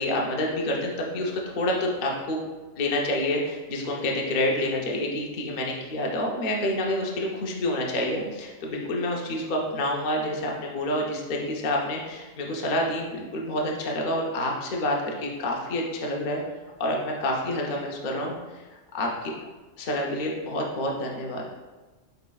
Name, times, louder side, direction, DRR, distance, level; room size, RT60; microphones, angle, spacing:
voice 1, 0.0-2.4 2.8-16.4 16.8-18.3 18.9-19.3 19.8-21.4, left 1 dB, 50° left, -1 dB, 0.6 m, -28 dB
4.4 x 3.9 x 2.3 m, 1.2 s
omnidirectional pair, 1.4 m